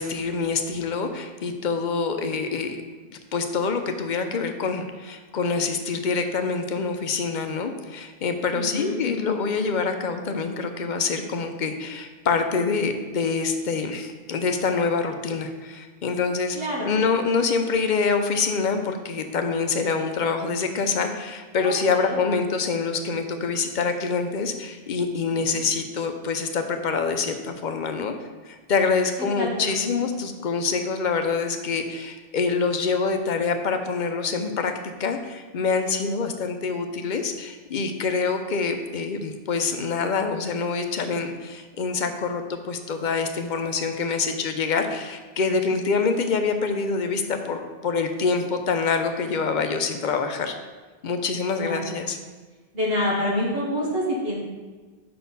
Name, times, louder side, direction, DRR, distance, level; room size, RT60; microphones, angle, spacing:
voice 1, 0.0-2.8 3.1-16.6 16.9-28.1 28.5-50.5 51.0-52.2, left 4 dB, 55° left, 6 dB, 0.7 m, -26 dB
voice 2, 8.5-8.9 16.5-16.9 21.6-22.2 25.3-25.6 29.4-29.9 51.6-52.0 52.7-54.4, left 1 dB, 70° right, -5 dB, 1.5 m, -27 dB
5.6 x 4.2 x 5.3 m, 1.4 s
omnidirectional pair, 1.0 m